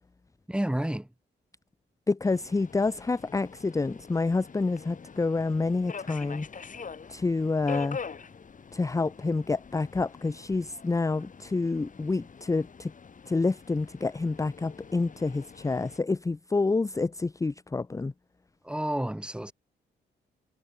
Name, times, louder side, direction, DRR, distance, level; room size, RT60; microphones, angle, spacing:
voice 1, 0.5-1.1 18.6-19.5, right 1 dB, 5° right, 1.7 m, -30 dB
voice 2, 2.1-6.5 7.1-8.0 8.7-12.9 13.3-18.1, left 3 dB, 15° left, 0.7 m, -28 dB
Subway metro underground, 2.2-16.0, left 5 dB, 45° left, 4.8 m, -45 dB
cardioid pair, 95°, 19 cm